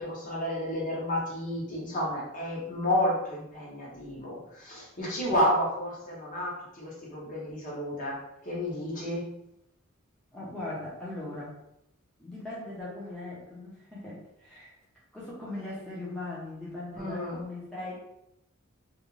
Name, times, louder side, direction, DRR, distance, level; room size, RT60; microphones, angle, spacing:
voice 1, 0.0-9.2 16.9-17.4, left 1 dB, 40° left, -5 dB, 0.9 m, -31 dB
voice 2, 10.3-11.6 12.2-14.7 15.1-17.9, left 2 dB, 5° left, -8 dB, 0.6 m, -39 dB
2.4 x 2.2 x 3.0 m, 0.83 s
head